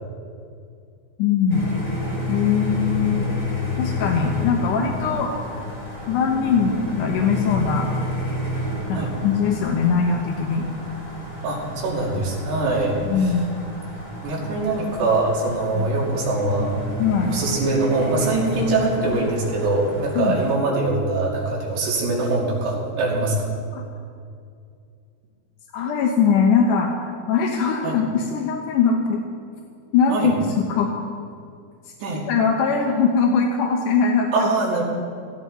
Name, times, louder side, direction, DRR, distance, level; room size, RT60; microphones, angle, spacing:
voice 1, 1.2-1.7 2.3-3.3 3.8-5.3 6.1-7.9 8.5-8.6 8.9-10.7 13.0-13.5 15.8-15.9 17.0-17.4 20.2-20.4 23.7-23.8 25.7-29.2 29.9-30.9 32.3-34.5, left 6 dB, 70° left, 1 dB, 2.0 m, -21 dB
sound 1, 1.5-20.5, left 1 dB, 10° left, 4.0 m, -30 dB
voice 2, 11.4-13.3 14.2-16.7 17.3-23.4 27.8-28.0 30.1-30.3 32.0-32.2 34.3-34.8, right 2 dB, 75° right, -4 dB, 4.6 m, -23 dB
17.0 x 15.0 x 4.2 m, 2.3 s
omnidirectional pair, 4.7 m